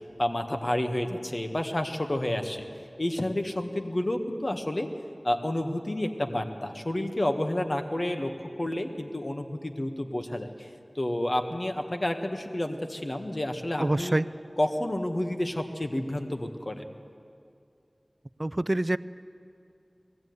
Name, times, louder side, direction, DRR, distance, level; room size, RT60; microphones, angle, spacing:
voice 1, 0.2-2.7 3.0-4.9 5.2-10.7 10.9-14.2 14.6-16.9, left 1 dB, 45° left, 5 dB, 1.6 m, -30 dB
voice 2, 13.8-14.3 18.4-19.0, right 1 dB, 40° right, 16 dB, 0.5 m, -25 dB
19.5 x 15.5 x 9.5 m, 2.5 s
wide cardioid pair, 40°, 0 cm